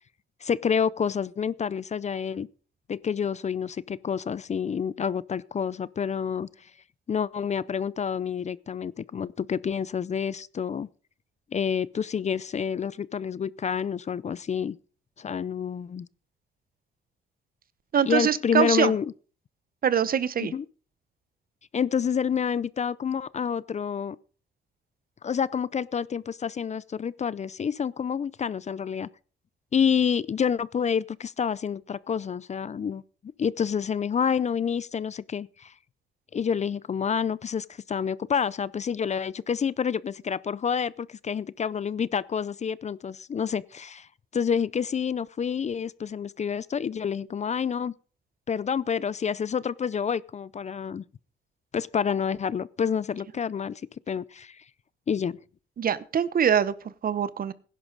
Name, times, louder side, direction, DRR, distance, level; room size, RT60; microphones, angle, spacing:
voice 1, 0.4-2.5 2.9-6.7 7.1-10.9 11.5-14.8 15.2-16.1 18.1-19.1 20.4-20.7 21.7-24.2 25.2-29.1 29.7-33.0 33.4-35.7 36.3-47.9 48.5-51.0 51.7-53.8 54.1-54.6 55.1-55.4, left 7 dB, 35° left, 0.5 m, -28 dB
voice 2, 17.9-18.9 19.8-20.5 55.8-57.5, right 8 dB, 45° right, 0.9 m, -24 dB
16.5 x 11.0 x 3.9 m
cardioid pair, 90°, 20 cm